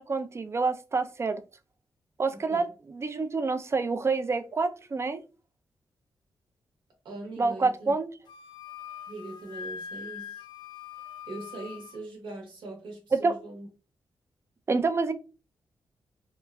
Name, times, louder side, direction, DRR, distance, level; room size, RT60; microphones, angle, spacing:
voice 1, 0.0-1.4 2.2-5.2 7.4-8.1 13.1-13.3 14.7-15.1, right 4 dB, 35° right, 0.4 m, -27 dB
voice 2, 2.3-2.7 7.0-7.9 9.1-10.4 11.3-13.7, right 2 dB, 85° right, 1.0 m, -41 dB
Wind instrument woodwind instrument, 8.3-12.0, left 7 dB, 70° left, 0.4 m, -42 dB
2.9 x 2.3 x 2.2 m
cardioid pair, 55°, 8 cm